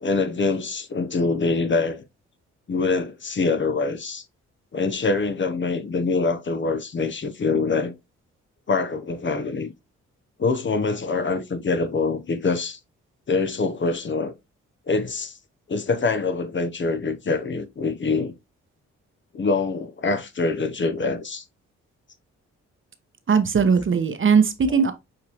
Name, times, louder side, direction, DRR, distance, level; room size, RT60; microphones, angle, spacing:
voice 1, 0.0-2.0 2.7-4.2 4.7-7.9 8.7-9.7 10.4-12.8 13.3-14.3 14.9-15.4 15.7-18.3 19.3-21.4 24.7-24.8, left 4 dB, 40° left, 0.8 m, -24 dB
voice 2, 23.3-24.9, right 6 dB, 40° right, 0.9 m, -19 dB
6.5 x 2.8 x 2.9 m
supercardioid pair, 55°, 30 cm